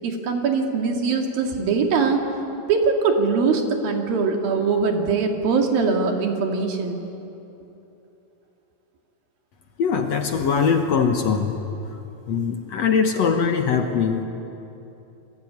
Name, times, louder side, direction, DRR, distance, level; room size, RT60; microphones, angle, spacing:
voice 1, 0.0-2.3 2.7-7.1, right 4 dB, 80° right, 3 dB, 4.2 m, -22 dB
voice 2, 9.8-11.5 12.3-14.2, left 6 dB, 60° left, 5 dB, 2.1 m, -21 dB
28.0 x 22.5 x 9.6 m, 3.0 s
omnidirectional pair, 4.1 m